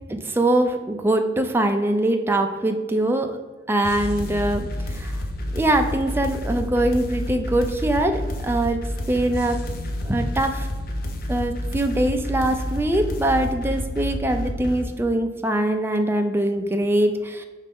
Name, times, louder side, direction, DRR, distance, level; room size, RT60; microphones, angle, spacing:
voice 1, 0.1-3.3 3.7-5.1 5.5-8.8 9.1-9.6 10.0-10.7 11.3-17.4, right 1 dB, 15° right, 5 dB, 0.5 m, -22 dB
sound 1, 3.8-14.8, left 1 dB, 55° left, 0.7 m, -29 dB
5.4 x 3.3 x 5.3 m, 1.3 s
head